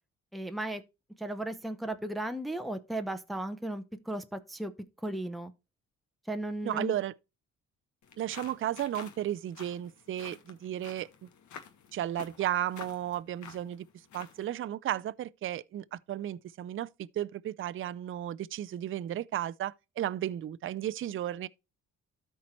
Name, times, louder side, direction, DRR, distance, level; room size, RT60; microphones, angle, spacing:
voice 1, 0.3-0.8 1.2-4.7 5.0-5.5 6.3-6.9, right 1 dB, ahead, 0.9 m, -35 dB
voice 2, 6.6-7.1 8.2-11.3 11.9-13.9 14.1-21.5, right 12 dB, 45° right, 0.5 m, -34 dB
sound 1, 8.0-14.5, left 7 dB, 70° left, 1.6 m, -50 dB
13.0 x 4.5 x 3.1 m
cardioid pair, 90°, 30 cm